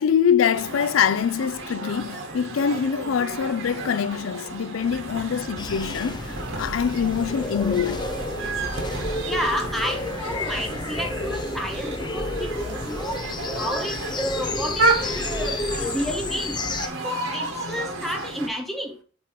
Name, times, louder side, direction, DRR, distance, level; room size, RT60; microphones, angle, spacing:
voice 1, 0.0-8.1, left 7 dB, 90° left, 0.4 m, -24 dB
sound 1, 0.5-18.5, right 2 dB, 90° right, 1.8 m, -32 dB
sound 2, 5.6-16.9, left 2 dB, 20° left, 0.5 m, -31 dB
voice 2, 9.3-13.2 13.5-16.5 17.0-18.9, equal, ahead, 1.2 m, -31 dB
8.1 x 3.1 x 4.5 m
head